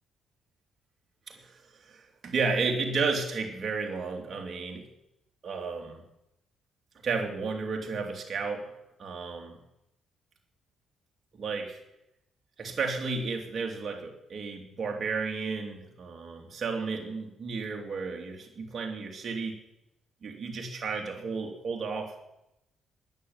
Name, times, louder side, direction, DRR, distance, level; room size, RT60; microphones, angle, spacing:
voice 1, 1.3-4.9 5.4-6.0 7.0-8.7 9.0-9.6 11.3-11.8 12.6-19.6 20.2-22.2, right 4 dB, 45° right, 2 dB, 3.0 m, -33 dB
20.5 x 7.3 x 9.7 m, 0.86 s
cardioid pair, 90°, 0 cm